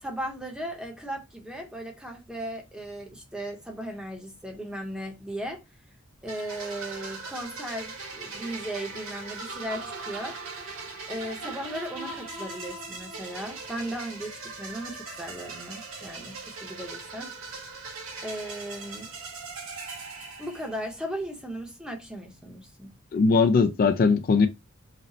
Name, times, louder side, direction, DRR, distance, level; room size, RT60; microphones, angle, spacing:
voice 1, 0.0-5.6 6.2-17.9 18.2-19.1 20.4-22.9, right 1 dB, 5° right, 0.8 m, -37 dB
sound 1, 6.3-21.0, right 3 dB, 90° right, 1.2 m, -40 dB
voice 2, 23.1-24.5, left 4 dB, 45° left, 0.3 m, -20 dB
3.9 x 2.1 x 4.0 m
head